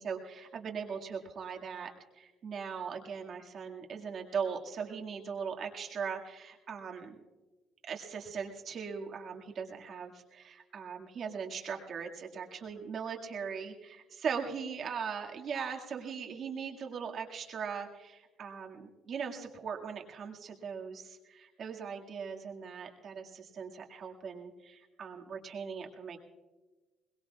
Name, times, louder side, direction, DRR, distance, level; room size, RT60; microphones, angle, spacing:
voice 1, 0.0-1.9 2.1-7.2 7.8-26.2, right 6 dB, 50° right, 1 dB, 2.0 m, -39 dB
22.0 x 20.5 x 2.4 m, 1.2 s
cardioid pair, 130°, 0 cm